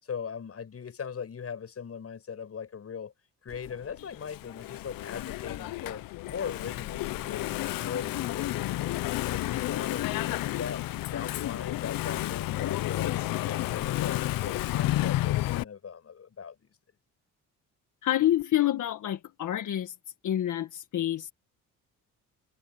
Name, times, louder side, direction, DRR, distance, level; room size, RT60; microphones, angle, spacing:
voice 1, 0.0-3.1 3.4-9.0 9.2-10.8 11.1-13.1 13.5-16.7, left 7 dB, 45° left, 7.8 m, -39 dB
Engine / Mechanisms, 3.5-15.6, left 16 dB, 85° left, 0.8 m, -31 dB
voice 2, 18.0-20.0 20.2-21.3, left 12 dB, 65° left, 1.8 m, -27 dB
cardioid pair, 95°, 33 cm